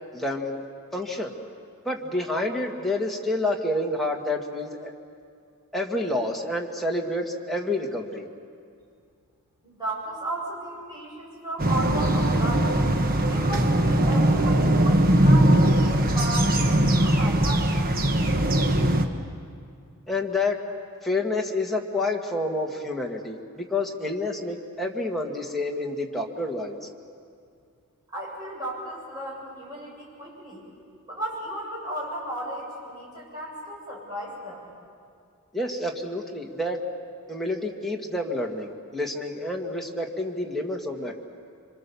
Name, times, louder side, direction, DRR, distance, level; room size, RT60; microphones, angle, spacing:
voice 1, 0.1-0.6 0.9-1.3 1.9-4.9 5.7-8.3 20.1-20.6 21.0-26.8 35.5-36.8 37.3-41.1, left 2 dB, ahead, -1 dB, 1.8 m, -28 dB
voice 2, 9.6-12.7 13.2-17.5 28.1-30.6 31.1-34.7, right 1 dB, 20° right, -5 dB, 7.5 m, -34 dB
sound 1, 11.6-19.1, right 1 dB, 40° right, 1.2 m, -20 dB
27.0 x 25.0 x 7.0 m, 2.3 s
head